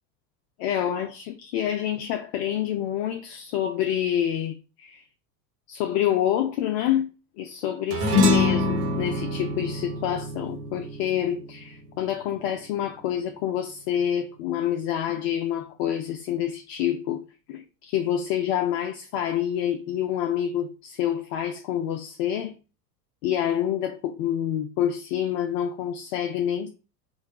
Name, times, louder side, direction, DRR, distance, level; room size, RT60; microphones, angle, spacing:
voice 1, 0.6-5.0 5.7-7.1 7.4-17.2 17.5-22.6 23.2-26.7, left 10 dB, 45° left, 0.5 m, -27 dB
sound 1, 7.9-12.6, left 3 dB, 65° right, 1.4 m, -25 dB
4.4 x 2.6 x 3.1 m
figure-of-eight pair, 85°, 49 cm